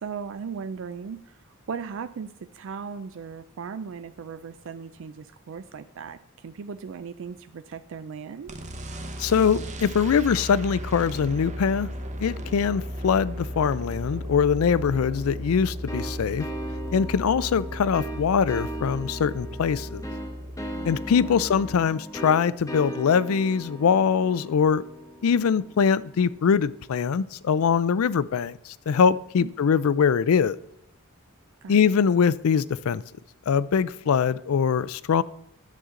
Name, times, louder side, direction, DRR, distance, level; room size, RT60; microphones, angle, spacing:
voice 1, 0.0-8.6 20.7-21.4 29.4-29.5 31.6-31.9, right 6 dB, 65° right, 0.4 m, -38 dB
sound 1, 8.5-21.8, equal, 35° right, 0.9 m, -36 dB
voice 2, 9.2-11.9 12.2-16.5 16.9-20.0 20.8-24.8 25.2-30.6 31.7-33.0 33.5-35.2, left 6 dB, 80° left, 0.4 m, -23 dB
sound 2, 15.9-26.4, right 1 dB, 15° left, 0.9 m, -38 dB
10.5 x 7.9 x 3.7 m
head